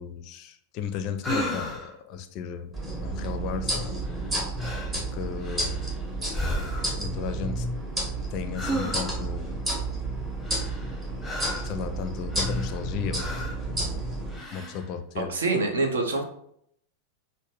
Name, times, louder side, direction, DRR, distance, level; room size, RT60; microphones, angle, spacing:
voice 1, 0.0-2.7 3.0-3.9 4.9-5.9 7.0-7.7 8.3-9.6 11.6-13.4 13.7-14.0 14.5-15.3, left 7 dB, 40° left, 8 dB, 0.4 m, -34 dB
sound 1, 1.2-2.0 4.1-4.3 4.6-5.0 5.4-6.0 6.3-7.1 8.5-9.3 10.4-11.8 12.3-12.9 13.1-13.6 14.3-14.9, equal, 5° left, 0.8 m, -33 dB
sound 2, 2.7-14.4, right 2 dB, 20° right, 1.3 m, -31 dB
voice 2, 15.2-16.2, right 3 dB, 65° right, 3 dB, 0.8 m, -25 dB
6.2 x 2.1 x 3.4 m, 0.70 s
figure-of-eight pair, 90°, 0 cm